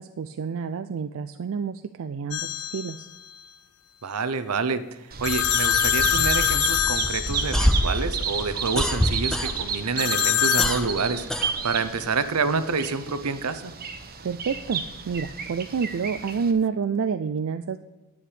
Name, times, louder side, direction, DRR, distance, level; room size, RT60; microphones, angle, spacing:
voice 1, 0.0-3.1 14.2-17.8, right 6 dB, 65° right, 10 dB, 0.4 m, -28 dB
sound 1, 2.3-3.0 5.2-7.9 10.0-10.8, left 11 dB, 65° left, 0.5 m, -24 dB
voice 2, 4.0-13.7, right 4 dB, 80° right, 12 dB, 0.8 m, -28 dB
Bird vocalization bird call bird song, 5.1-16.5, right 5 dB, 45° right, 1.0 m, -32 dB
sound 2, 7.3-9.9 10.2-12.1, equal, 5° left, 0.6 m, -25 dB
10.5 x 8.1 x 5.0 m, 1.1 s
head